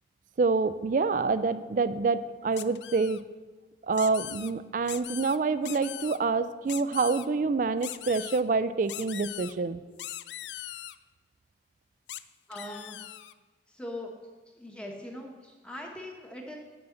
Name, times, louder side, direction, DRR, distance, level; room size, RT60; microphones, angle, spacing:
voice 1, 0.4-3.2 3.9-9.8, right 4 dB, 45° right, 14 dB, 0.3 m, -27 dB
sound 1, 2.6-3.2 3.9-4.5 4.9-5.4 5.6-6.2 6.7-7.3 7.8-8.4 8.9-9.5 10.0-11.0 12.1-12.2 12.5-13.3, left 14 dB, 75° left, 0.3 m, -40 dB
voice 2, 12.5-13.0 13.7-14.1 14.5-16.6, left 1 dB, 5° left, 1 dB, 1.0 m, -41 dB
6.2 x 6.2 x 7.1 m, 1.3 s
head